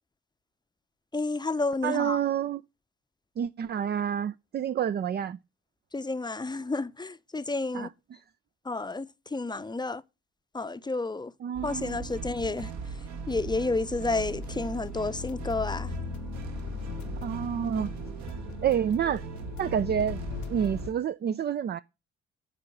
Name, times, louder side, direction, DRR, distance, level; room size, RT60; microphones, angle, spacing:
voice 1, 1.1-2.2 5.9-7.9 8.6-10.0 10.5-11.3 11.6-12.7 13.3-15.9, left 3 dB, 15° left, 0.7 m, -31 dB
voice 2, 1.8-2.6 3.4-5.4 7.7-8.2 11.4-12.1 17.2-17.9 18.6-19.2 19.6-20.2 20.5-21.8, right 9 dB, 30° right, 0.5 m, -28 dB
sound 1, 11.5-20.9, right 5 dB, 55° right, 1.4 m, -39 dB
sound 2, 14.1-20.9, left 10 dB, 65° left, 0.9 m, -40 dB
12.0 x 4.7 x 6.6 m
hypercardioid pair, 45°, 32 cm